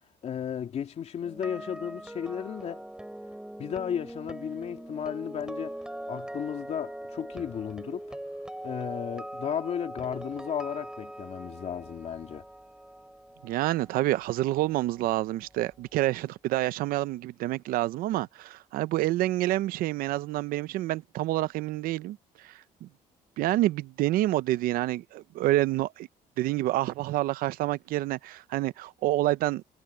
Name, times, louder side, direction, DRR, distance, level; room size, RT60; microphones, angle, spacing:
voice 1, 0.2-2.8 3.6-5.8 6.1-8.1 8.6-12.4, left 8 dB, 50° left, 3.0 m, -34 dB
sound 1, 1.2-15.3 15.5-15.8, right 1 dB, 5° right, 6.4 m, -42 dB
voice 2, 13.4-22.2 22.4-22.5 22.8-22.9 23.4-26.1 26.4-29.6, right 16 dB, 80° right, 0.7 m, -28 dB
cardioid pair, 125°, 15 cm